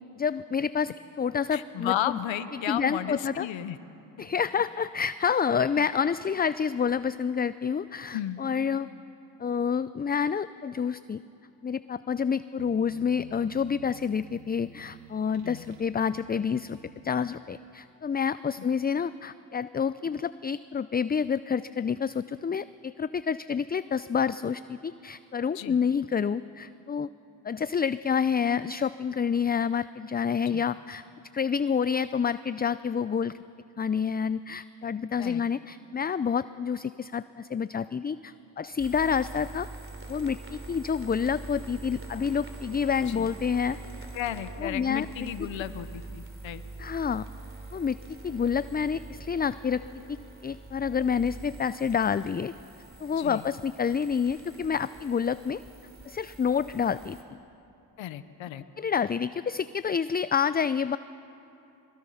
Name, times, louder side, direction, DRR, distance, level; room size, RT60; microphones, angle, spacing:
voice 1, 0.2-2.2 2.5-3.5 4.2-8.9 9.4-11.2 11.6-16.8 17.0-27.1 27.4-31.0 31.3-33.4 33.8-39.7 40.1-43.8 44.6-45.3 46.8-47.3 47.7-48.0 48.2-49.8 50.1-50.2 50.4-52.5 53.0-55.6 56.1-57.2 58.8-61.0, left 6 dB, 20° left, 15 dB, 0.4 m, -28 dB
voice 2, 1.5-3.8 4.2-4.3 5.8-5.9 8.1-8.7 15.4-15.6 25.5-25.8 30.5-30.6 35.2-35.4 43.1-43.3 44.1-46.6 53.2-53.5 58.0-58.6, left 11 dB, 80° left, 13 dB, 1.0 m, -34 dB
sound 1, 12.6-17.5, right 7 dB, 80° right, 1.2 m, -51 dB
sound 2, 38.8-57.2, right 2 dB, 25° right, 3.3 m, -44 dB
23.5 x 20.5 x 5.7 m, 3.0 s
supercardioid pair, 45°, 46 cm